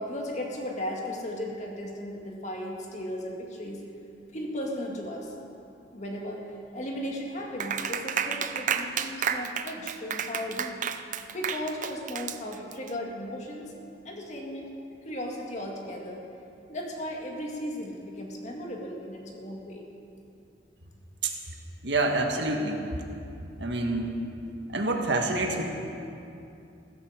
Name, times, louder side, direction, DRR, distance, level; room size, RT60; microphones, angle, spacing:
voice 1, 0.0-3.8 4.3-5.3 5.9-6.5 6.7-10.8 11.3-13.7 14.0-16.2 16.7-19.8, left 1 dB, 40° left, -1 dB, 2.1 m, -36 dB
Clapping, 7.6-12.9, right 7 dB, 45° right, 0.6 m, -31 dB
voice 2, 21.8-22.8 23.6-24.1 24.7-25.6, right 2 dB, 80° right, 2 dB, 1.7 m, -27 dB
15.5 x 13.5 x 5.0 m, 2.7 s
head